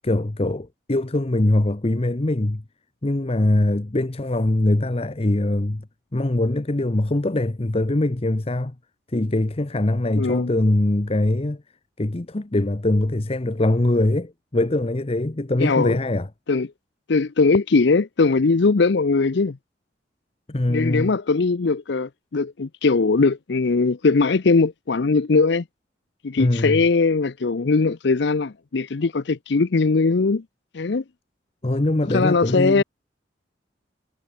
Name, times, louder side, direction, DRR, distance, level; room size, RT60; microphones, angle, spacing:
voice 1, 0.0-2.6 3.0-5.8 6.1-8.7 9.1-11.6 12.0-16.3 20.5-21.1 26.4-26.8 31.6-32.8, left 1 dB, 30° left, 0.8 m, -22 dB
voice 2, 10.2-10.5 15.6-16.0 16.5-16.7 17.1-19.6 20.7-25.6 26.2-30.4 30.7-31.0 32.1-32.8, left 4 dB, 65° left, 0.6 m, -20 dB
head